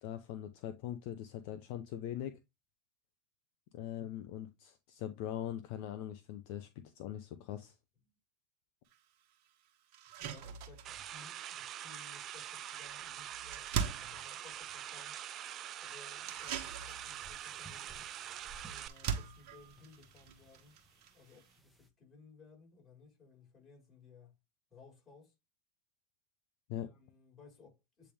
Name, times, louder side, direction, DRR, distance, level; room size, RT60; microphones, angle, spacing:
voice 1, 0.0-2.4 3.7-7.7 26.7-26.9, left 11 dB, 60° left, 0.7 m, -42 dB
sound 1, 8.9-9.0 9.5-9.6 9.9-21.6, right 7 dB, 55° right, 1.2 m, -44 dB
voice 2, 10.2-15.2 15.8-18.0 18.6-20.8 21.1-24.3 24.7-25.3 26.8-28.1, left 4 dB, 25° left, 4.7 m, -59 dB
sound 2, 10.8-18.9, right 11 dB, 40° right, 0.5 m, -44 dB
sound 3, 16.3-21.9, right 1 dB, 5° right, 1.1 m, -60 dB
8.4 x 3.4 x 3.5 m
hypercardioid pair, 95°, 0 cm